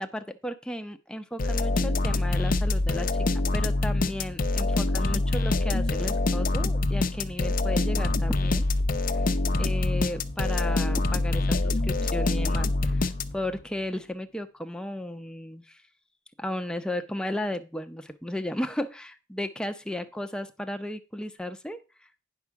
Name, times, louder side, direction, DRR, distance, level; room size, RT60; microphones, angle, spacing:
voice 1, 0.0-8.7 9.1-9.3 9.6-15.8 16.4-22.3, left 1 dB, 5° left, 7 dB, 0.7 m, -34 dB
sound 1, 1.4-13.6, left 2 dB, 45° left, 0.7 m, -25 dB
9.7 x 6.2 x 4.7 m, 0.31 s
head